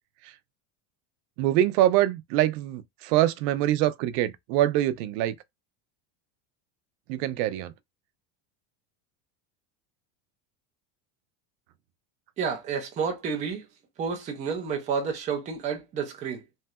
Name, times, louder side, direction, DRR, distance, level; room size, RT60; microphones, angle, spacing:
voice 1, 1.4-5.4 7.1-7.7, right 13 dB, 85° right, 0.6 m, -24 dB
voice 2, 12.4-13.6 14.0-16.4, right 6 dB, 15° right, 0.3 m, -30 dB
3.2 x 2.6 x 2.3 m
cardioid pair, 170°, 49 cm